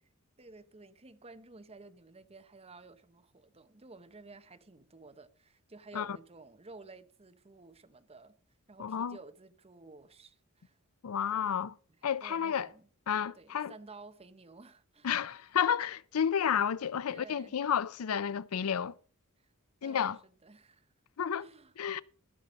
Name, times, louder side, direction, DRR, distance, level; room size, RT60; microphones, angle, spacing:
voice 1, 0.4-8.3 8.7-10.8 11.3-11.6 12.2-12.9 13.4-15.1 17.1-17.6 19.4-19.5 19.8-20.9 21.4-21.7, right 3 dB, 30° right, 1.0 m, -53 dB
voice 2, 8.8-9.2 11.0-11.7 12.0-12.7 13.1-13.7 15.0-18.9 19.8-20.2 21.2-21.5 21.8-22.0, left 8 dB, 85° left, 0.5 m, -31 dB
15.0 x 6.7 x 5.3 m
head